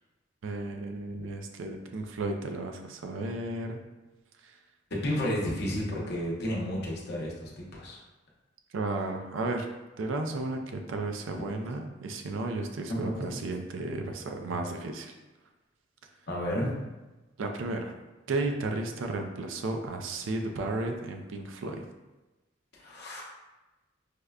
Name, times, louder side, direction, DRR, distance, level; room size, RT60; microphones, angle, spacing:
voice 1, 0.4-3.8 4.4-4.6 8.7-9.7 10.0-15.1 17.4-17.9 18.3-21.8, right 2 dB, 85° right, 4 dB, 0.4 m, -33 dB
voice 2, 4.9-8.0 8.9-9.1 11.4-11.5 12.9-13.3 16.3-16.7 22.7-23.2, equal, 60° left, -3 dB, 0.8 m, -32 dB
4.9 x 2.2 x 2.3 m, 1.1 s
head